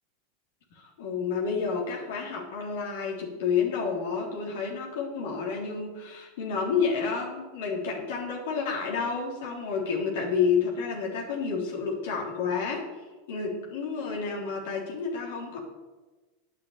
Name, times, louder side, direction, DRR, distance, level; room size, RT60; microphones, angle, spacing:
voice 1, 0.7-12.8 13.3-15.6, left 5 dB, 75° left, -2 dB, 3.4 m, -30 dB
9.7 x 7.5 x 8.7 m, 1.3 s
supercardioid pair, 115°, 0 cm